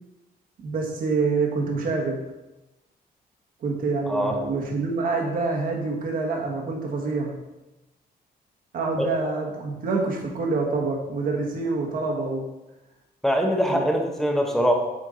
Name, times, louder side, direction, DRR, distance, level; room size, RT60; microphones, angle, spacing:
voice 1, 0.6-2.2 3.6-7.4 8.7-12.5 13.7-13.8, right 3 dB, 60° right, 0 dB, 1.4 m, -26 dB
voice 2, 4.1-4.4 9.0-9.1 13.2-14.7, equal, ahead, 2 dB, 0.8 m, -22 dB
7.8 x 4.5 x 3.9 m, 1.0 s
wide cardioid pair, 160°, 17 cm